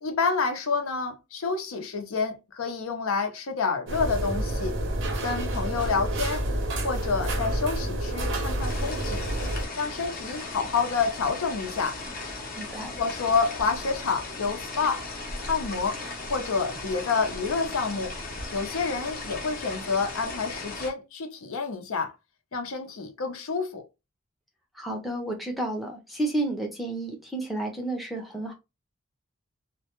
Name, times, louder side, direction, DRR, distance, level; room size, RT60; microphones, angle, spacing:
voice 1, 0.0-4.8 5.2-6.4 6.8-9.2 9.8-12.0 13.0-15.0 15.5-16.0 16.3-18.2 18.5-22.1 22.5-23.8, left 4 dB, 85° left, 0.6 m, -28 dB
sound 1, 3.9-9.7, right 1 dB, 60° right, 0.5 m, -29 dB
sound 2, 8.6-20.9, left 3 dB, 40° left, 0.6 m, -37 dB
voice 2, 12.6-12.9 24.7-28.5, right 2 dB, ahead, 0.5 m, -31 dB
2.1 x 2.1 x 2.8 m
head